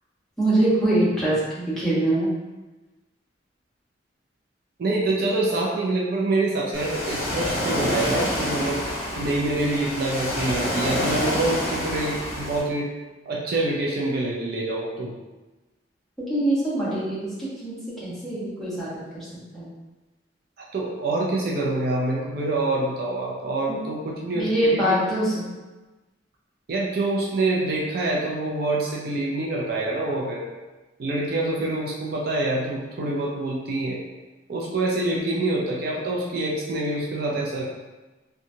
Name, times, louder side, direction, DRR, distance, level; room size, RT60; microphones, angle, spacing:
voice 1, 0.4-2.3 16.3-17.7 18.0-19.3 19.5-19.7 23.7-23.8 24.3-25.5, right 1 dB, ahead, -11 dB, 0.9 m, -23 dB
voice 2, 4.8-8.9 9.2-12.9 13.3-15.1 20.7-25.0 26.7-30.4 31.0-34.0 34.5-37.6, right 2 dB, 55° right, -3 dB, 0.4 m, -26 dB
Ocean, 6.7-12.6, equal, 55° left, 0.9 m, -28 dB
2.8 x 2.2 x 2.6 m, 1.2 s
head